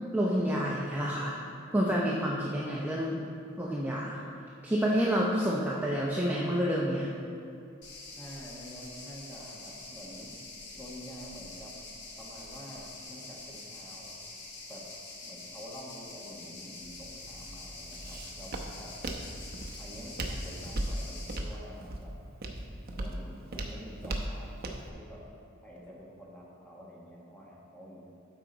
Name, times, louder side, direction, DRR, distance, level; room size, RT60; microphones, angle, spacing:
voice 1, 0.1-1.4 1.7-3.2 3.6-4.2 4.6-7.1, equal, 10° right, -4 dB, 0.6 m, -28 dB
sound 1, 7.8-21.4, left 3 dB, 55° left, 1.3 m, -46 dB
voice 2, 8.2-10.3 10.7-11.7 12.2-14.1 14.7-14.8 15.2-18.9 19.8-22.1 22.9-24.6 24.9-25.2 25.6-28.0, equal, 5° left, -5 dB, 1.4 m, -48 dB
Walk footsteps, 16.8-24.9, right 1 dB, 50° right, 0.8 m, -38 dB
12.0 x 4.9 x 4.0 m, 2.7 s
head